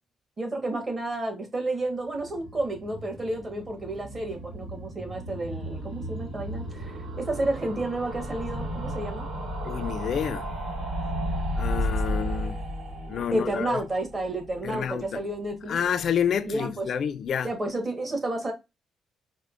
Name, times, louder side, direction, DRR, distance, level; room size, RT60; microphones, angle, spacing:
voice 1, 0.4-9.3 11.7-11.8 12.1-15.8 16.4-16.9 17.4-18.5, right 1 dB, 35° right, 1.3 m, -31 dB
sound 1, 2.1-15.1 15.4-15.5 15.7-15.8 16.0-16.1, equal, 85° right, 1.1 m, -34 dB
voice 2, 9.6-10.5 11.6-12.6 13.1-13.8 14.6-15.2 15.7-17.5, left 8 dB, 60° left, 0.3 m, -29 dB
4.4 x 2.0 x 2.4 m
cardioid pair, 90°, 0 cm